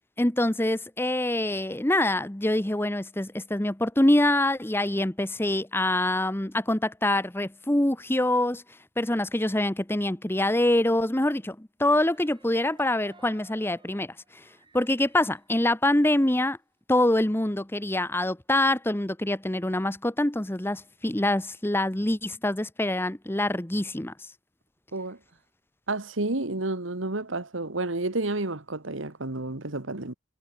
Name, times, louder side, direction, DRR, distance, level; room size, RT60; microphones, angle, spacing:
voice 1, 0.2-8.6 9.0-14.4 14.7-16.6 16.9-24.1, left 1 dB, 10° left, 0.9 m, -25 dB
sound 1, 11.9-16.5 16.8-16.9 17.1-19.0, right 3 dB, 25° right, 7.7 m, -59 dB
voice 2, 25.9-30.1, right 2 dB, 75° right, 1.9 m, -30 dB
head